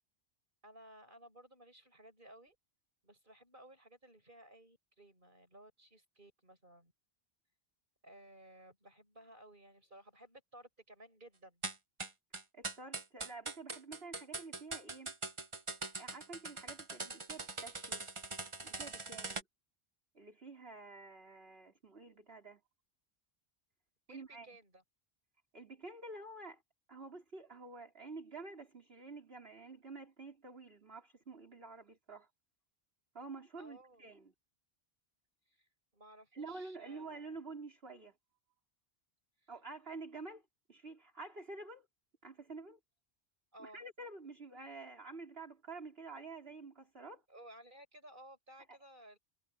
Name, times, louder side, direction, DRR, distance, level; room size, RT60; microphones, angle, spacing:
voice 1, 0.6-2.6 3.0-6.9 8.0-11.6 24.1-24.8 33.6-34.1 35.5-35.7 35.9-37.2 39.4-39.5 43.5-43.8 47.3-49.2, right 1 dB, 55° right, 7.8 m, -57 dB
sound 1, 11.6-19.4, right 3 dB, 30° right, 1.2 m, -42 dB
voice 2, 12.5-15.1 16.0-18.1 18.6-19.5 20.1-22.6 24.1-24.5 25.5-26.6 26.9-32.3 33.1-34.3 36.3-38.1 39.5-40.4 40.7-41.9 42.2-42.8 43.6-47.2, right 3 dB, 70° right, 4.7 m, -49 dB
omnidirectional pair, 1.1 m